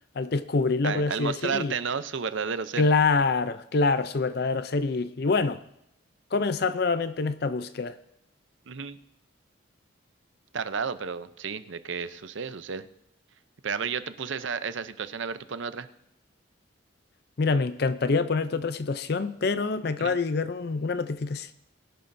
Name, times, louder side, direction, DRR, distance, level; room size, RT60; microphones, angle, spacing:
voice 1, 0.2-1.7 2.8-5.6 6.3-8.0 17.4-21.5, left 4 dB, 50° left, 0.5 m, -26 dB
voice 2, 0.8-2.9 8.7-9.0 10.5-12.8 13.6-15.9 20.0-20.1, right 6 dB, 70° right, 0.6 m, -32 dB
21.5 x 11.0 x 2.7 m
head